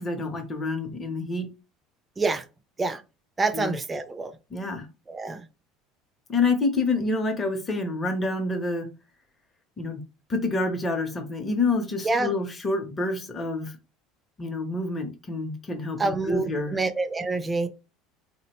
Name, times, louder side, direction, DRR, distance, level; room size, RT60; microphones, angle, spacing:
voice 1, 0.0-1.5 3.5-3.7 4.5-4.9 6.3-8.9 9.8-10.0 10.3-13.7 14.4-16.8, left 3 dB, 20° left, 0.7 m, -27 dB
voice 2, 3.4-4.3 5.1-5.4 12.0-12.3 16.0-17.7, right 3 dB, 15° right, 0.4 m, -27 dB
3.6 x 2.1 x 2.9 m
cardioid pair, 140°, 0 cm